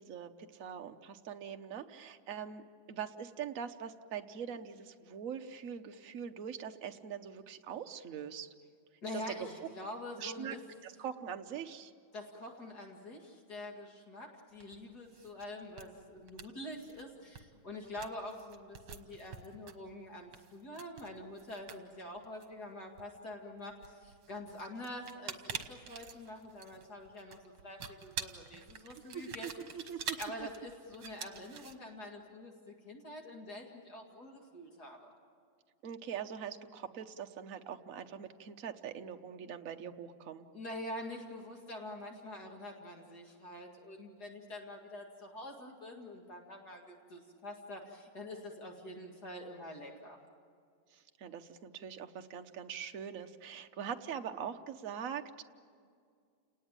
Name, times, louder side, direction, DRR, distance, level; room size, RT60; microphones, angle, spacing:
voice 1, 0.0-8.5 9.1-9.2 10.2-10.6 10.8-11.9 29.0-30.5 35.8-40.5 50.9-55.4, right 8 dB, 50° right, 6 dB, 1.1 m, -43 dB
voice 2, 9.0-10.6 12.1-29.5 30.2-35.1 40.5-50.2, left 1 dB, 50° left, 1 dB, 2.6 m, -46 dB
Cassette Tape Handling, 14.6-14.8 15.1-15.5 15.7-15.8 16.2-17.0 17.4-17.5 17.8-23.2 23.7-31.8, right 7 dB, 75° right, 2.1 m, -46 dB
29.5 x 19.0 x 8.9 m, 2.2 s
omnidirectional pair, 2.3 m